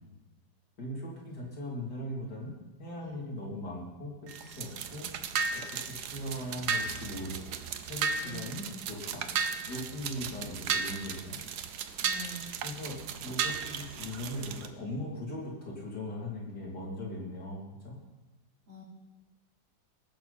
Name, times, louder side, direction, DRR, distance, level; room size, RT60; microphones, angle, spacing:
voice 1, 0.8-5.1 5.5-7.5 7.9-9.2 9.6-11.4 12.6-18.0, left 1 dB, 60° left, -3 dB, 3.8 m, -39 dB
sound 1, 4.3-14.7, right 6 dB, 65° right, 1.3 m, -35 dB
voice 2, 8.2-8.5 12.0-12.5 18.7-18.8, equal, 85° right, -6 dB, 4.9 m, -45 dB
20.0 x 11.5 x 4.3 m, 1.1 s
omnidirectional pair, 2.0 m